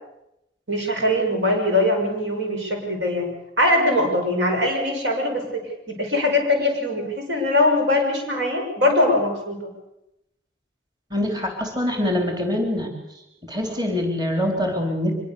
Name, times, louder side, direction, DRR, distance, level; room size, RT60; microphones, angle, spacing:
voice 1, 0.7-3.3 3.6-9.7, left 1 dB, 75° right, 2 dB, 6.5 m, -22 dB
voice 2, 11.1-12.9 13.4-15.3, left 1 dB, 25° right, 3 dB, 3.4 m, -24 dB
24.5 x 22.0 x 6.9 m, 0.86 s
head